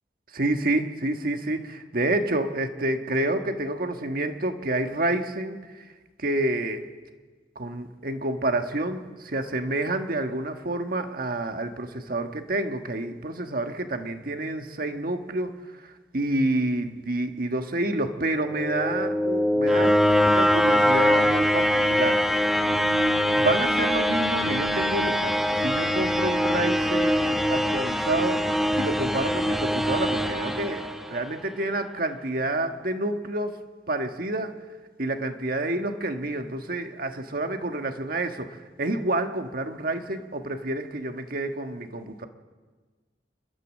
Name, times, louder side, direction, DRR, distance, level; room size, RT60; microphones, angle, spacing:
voice 1, 0.3-5.8 6.2-6.9 7.5-22.6 23.3-28.4 28.7-33.6 33.9-34.5 35.0-42.3, right 2 dB, 55° right, 6 dB, 1.5 m, -29 dB
sound 1, 18.3-31.4, equal, ahead, 1.0 m, -23 dB
29.0 x 12.0 x 7.4 m, 1.4 s
head